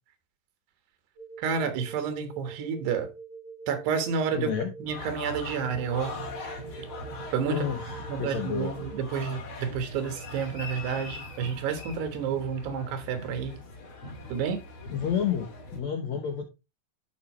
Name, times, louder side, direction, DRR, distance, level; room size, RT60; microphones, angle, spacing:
sound 1, 1.2-9.0, right 5 dB, 50° right, 1.8 m, -45 dB
voice 1, 1.4-3.1 3.7-4.5 4.8-6.2 7.3-7.7 8.1-13.6 14.3-14.6, right 6 dB, 85° right, 3.5 m, -30 dB
voice 2, 4.3-4.7 7.5-8.7 14.9-16.4, left 8 dB, 75° left, 1.6 m, -30 dB
sound 2, 4.8-15.8, left 2 dB, 40° left, 2.2 m, -41 dB
12.0 x 5.2 x 3.1 m
omnidirectional pair, 4.6 m